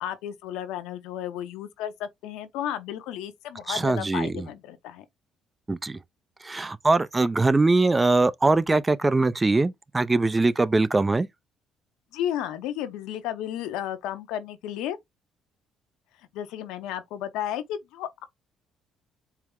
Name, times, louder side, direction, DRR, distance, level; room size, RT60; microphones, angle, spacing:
voice 1, 0.0-5.0 7.9-8.1 12.1-15.0 16.3-18.2, left 11 dB, 90° left, 0.8 m, -33 dB
voice 2, 3.7-4.5 5.7-6.0 6.4-11.3, right 3 dB, 20° right, 0.4 m, -22 dB
4.6 x 2.1 x 3.6 m
cardioid pair, 95°, 0 cm